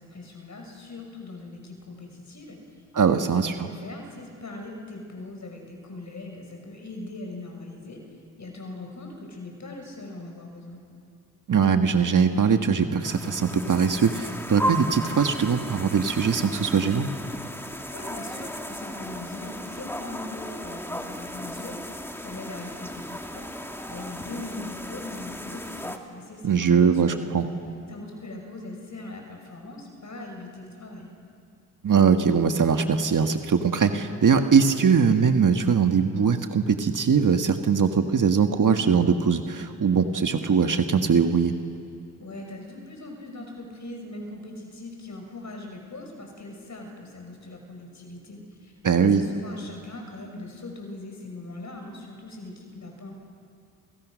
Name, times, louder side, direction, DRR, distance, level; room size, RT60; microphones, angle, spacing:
voice 1, 0.0-2.6 3.1-8.0 8.4-10.8 17.9-23.5 23.9-27.3 27.9-31.1 42.2-53.1, left 2 dB, 50° left, 2 dB, 6.0 m, -40 dB
voice 2, 2.9-3.5 11.5-17.1 26.4-27.4 31.8-41.5 48.8-49.2, right 6 dB, 60° right, 6 dB, 1.6 m, -21 dB
sound 1, 13.0-26.0, equal, 5° left, 2.4 m, -35 dB
30.0 x 27.5 x 6.4 m, 2.4 s
cardioid pair, 60°, 36 cm